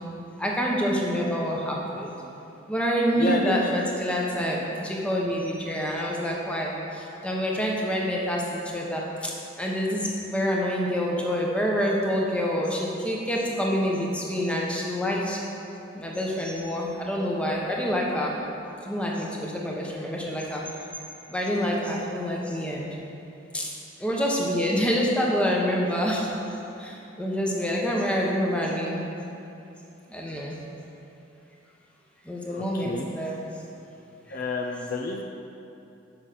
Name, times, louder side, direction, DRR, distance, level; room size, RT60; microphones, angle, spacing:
voice 1, 0.4-2.1 2.7-9.3 9.6-15.4 15.9-18.4 18.8-20.8 21.3-22.9 23.5-23.7 24.0-26.3 26.8-29.1 30.1-30.6 32.3-33.4, equal, 5° left, -3 dB, 1.0 m, -27 dB
voice 2, 3.2-3.7 32.5-33.1 34.3-35.2, left 2 dB, 45° left, 1 dB, 0.5 m, -30 dB
7.1 x 5.7 x 6.7 m, 2.8 s
head